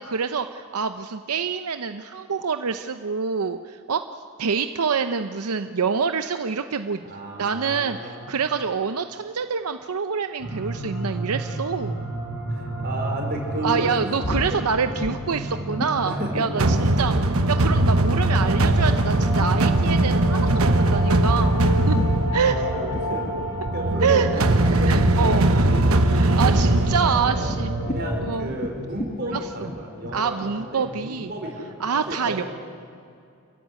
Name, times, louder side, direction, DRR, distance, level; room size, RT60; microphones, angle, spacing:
voice 1, 0.0-4.0 4.4-12.1 13.6-22.0 22.3-22.5 24.0-24.3 24.8-25.7 26.1-27.7 28.2-28.5 29.2-29.7 30.1-31.3 31.8-32.4, right 6 dB, 90° right, 9 dB, 0.7 m, -26 dB
voice 2, 7.1-8.3 12.5-14.1 14.3-14.5 16.0-16.7 20.4-20.9 22.4-23.3 23.7-26.2 27.0-27.5 27.9-32.4, right 1 dB, 45° right, 0 dB, 4.8 m, -33 dB
sound 1, 10.4-28.2, right 1 dB, 70° left, 6.1 m, -32 dB
sound 2, 12.9-18.5 18.7-31.2, left 1 dB, 40° left, 1.4 m, -36 dB
sound 3, 16.6-28.5, right 1 dB, 75° right, 1.1 m, -21 dB
28.0 x 14.5 x 9.5 m, 2.4 s
head